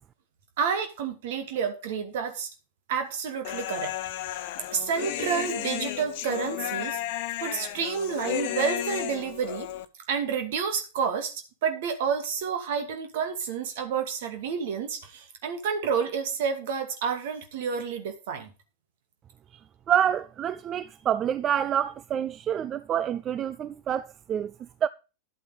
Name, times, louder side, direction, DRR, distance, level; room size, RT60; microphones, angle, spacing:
voice 1, 0.6-2.5 2.9-3.9 4.7-7.0 7.4-9.7 10.1-18.5, right 6 dB, 55° right, 2.4 m, -29 dB
Human voice, 3.4-9.9, left 14 dB, 50° left, 0.9 m, -33 dB
voice 2, 19.9-24.5 24.8-24.9, right 9 dB, 30° right, 0.4 m, -27 dB
11.5 x 8.2 x 5.1 m
figure-of-eight pair, 90°, 0 cm